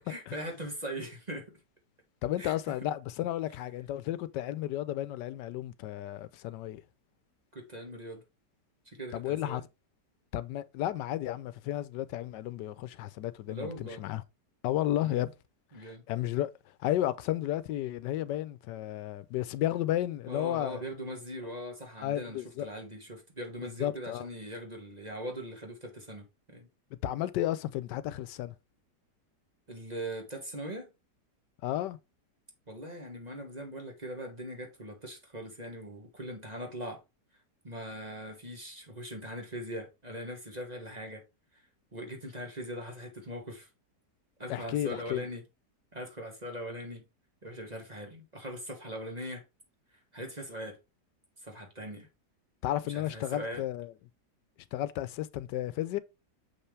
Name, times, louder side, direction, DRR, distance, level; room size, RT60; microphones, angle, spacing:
voice 1, 0.0-1.5 2.4-2.5 7.5-8.2 8.9-9.6 13.5-14.0 15.0-15.3 15.7-16.0 20.3-26.7 29.7-30.9 32.7-37.0 37.6-41.2 41.9-43.7 44.4-45.4 45.9-47.0 47.4-49.4 50.1-50.8 51.4-52.1 52.9-53.6, equal, 25° right, 1.5 m, -41 dB
voice 2, 2.2-6.8 9.1-9.6 10.3-14.2 14.6-15.3 15.8-16.5 16.8-20.8 22.0-22.7 23.8-24.3 27.0-28.5 31.6-32.0 44.5-45.2 52.6-53.9 54.7-56.0, left 13 dB, 85° left, 1.2 m, -33 dB
6.5 x 5.5 x 3.3 m
omnidirectional pair, 1.8 m